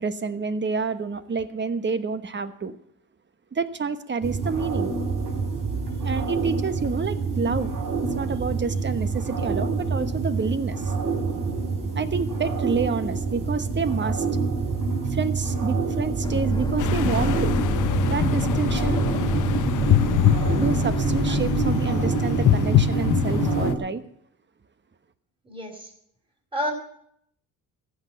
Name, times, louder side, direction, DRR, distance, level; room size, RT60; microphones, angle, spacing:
voice 1, 0.0-2.8 3.5-4.9 6.0-7.7 8.1-10.9 11.9-14.2 15.1-17.6 18.0-19.0 20.6-24.0, right 5 dB, 30° right, 11 dB, 1.1 m, -28 dB
sound 1, 4.2-23.7, right 4 dB, 60° right, 4.0 m, -26 dB
sound 2, 16.2-21.7, left 1 dB, 10° left, 1.2 m, -32 dB
sound 3, 16.8-23.7, left 14 dB, 55° left, 0.6 m, -25 dB
voice 2, 25.4-25.9 26.5-26.7, equal, 15° right, 1 dB, 4.5 m, -29 dB
15.0 x 6.5 x 9.2 m, 0.71 s
cardioid pair, 90°, 38 cm